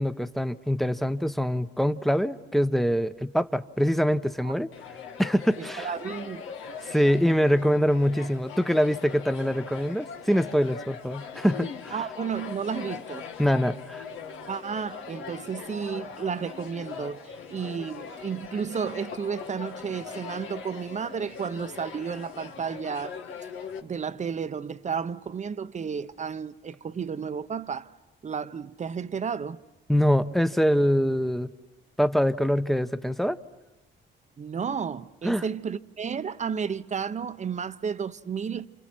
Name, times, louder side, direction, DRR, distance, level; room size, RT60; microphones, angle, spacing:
voice 1, 0.0-4.7 5.2-5.9 6.8-12.0 13.4-14.0 29.9-31.5 32.0-33.4 35.2-35.4, equal, ahead, 0.9 m, -24 dB
sound 1, 4.7-23.8, left 6 dB, 85° left, 1.8 m, -41 dB
voice 2, 5.6-6.5 11.9-13.2 14.5-23.2 23.8-27.9 28.2-29.6 34.4-38.7, right 6 dB, 35° right, 0.8 m, -32 dB
29.0 x 28.5 x 6.2 m
cardioid pair, 90°, 20 cm